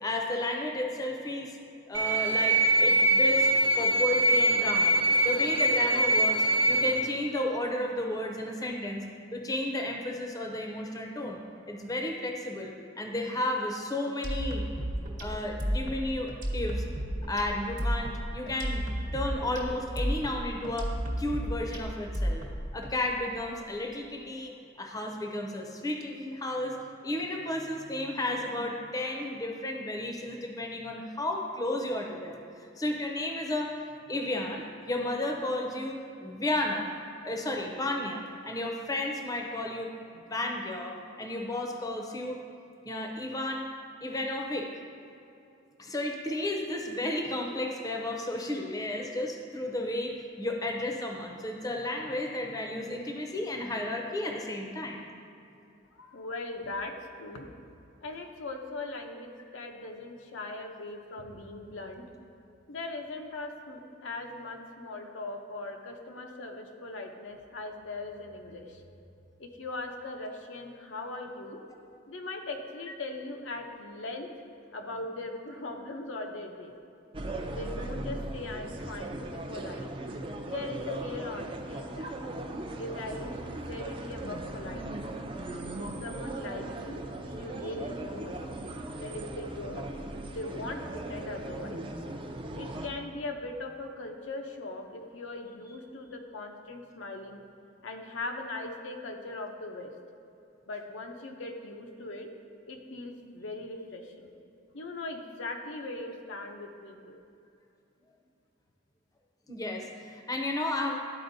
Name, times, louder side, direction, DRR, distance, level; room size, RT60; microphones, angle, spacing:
voice 1, 0.0-1.6 1.9-3.5 3.8-5.0 5.2-9.0 9.3-11.4 11.7-14.6 15.2-16.8 17.3-18.8 19.1-22.4 22.7-26.8 27.0-33.7 34.1-36.9 37.2-42.4 42.8-43.7 44.0-44.7 45.8-55.0 109.5-111.0, left 1 dB, 20° left, 2 dB, 0.5 m, -33 dB
sound 1, 1.9-7.0, right 1 dB, 85° right, 1.0 m, -23 dB
sound 2, 14.2-22.9, equal, 45° right, 1.0 m, -32 dB
voice 2, 55.9-57.5 58.0-62.1 62.7-68.8 69.4-71.6 72.1-74.3 74.7-76.7 77.5-79.9 80.5-82.1 82.8-85.1 85.8-87.0 87.4-88.4 89.0-89.9 90.3-91.8 92.6-97.4 97.8-99.9 100.7-102.3 102.7-104.3 104.7-107.2, left 2 dB, 90° left, 3 dB, 0.7 m, -40 dB
sound 3, 77.1-92.9, right 2 dB, 30° right, 0.4 m, -38 dB
11.5 x 4.3 x 2.6 m, 2.6 s
head